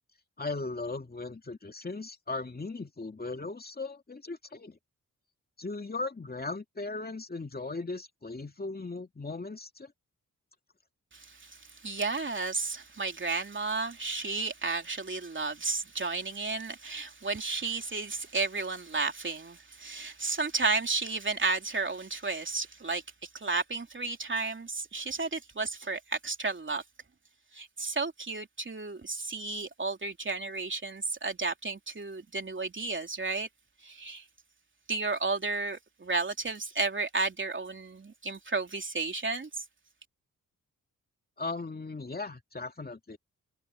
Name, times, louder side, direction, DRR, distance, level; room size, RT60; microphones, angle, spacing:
voice 1, 0.4-4.8 5.6-9.9 41.4-43.2, left 3 dB, 25° left, 2.5 m, -37 dB
voice 2, 11.1-26.8 27.5-33.5 33.8-34.2 34.9-39.6, right 3 dB, 35° right, 3.5 m, -33 dB
cardioid pair, 65°, 34 cm